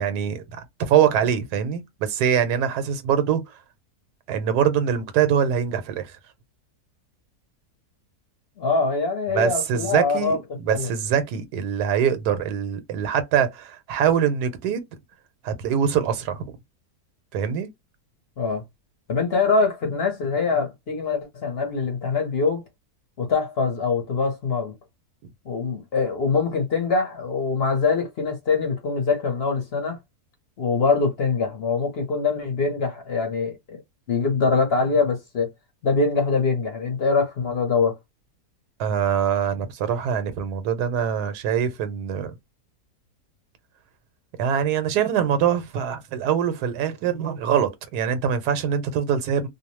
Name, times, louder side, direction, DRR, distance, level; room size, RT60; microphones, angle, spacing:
voice 1, 0.0-3.4 4.3-6.1 9.3-14.8 15.4-16.4 17.3-17.7 38.8-42.3 44.4-49.5, right 8 dB, 90° right, 1.2 m, -23 dB
voice 2, 8.6-10.4 10.7-10.9 18.4-18.6 19.1-22.6 23.2-24.7 25.4-30.0 30.6-33.8 34.1-35.5 35.8-38.0, left 4 dB, 55° left, 0.8 m, -23 dB
2.6 x 2.0 x 3.0 m
omnidirectional pair, 1.7 m